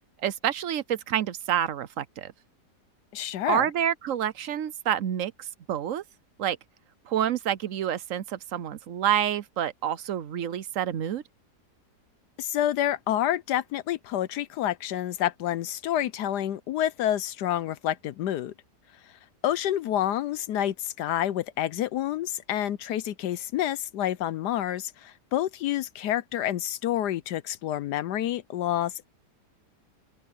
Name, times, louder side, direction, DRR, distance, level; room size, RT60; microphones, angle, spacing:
voice 1, 0.2-2.3 3.5-6.0 6.4-6.6 7.1-11.2, right 10 dB, 60° right, 0.9 m, -28 dB
voice 2, 3.1-3.7 12.4-18.5 19.4-29.1, left 12 dB, 75° left, 1.2 m, -28 dB
open air
omnidirectional pair, 1.8 m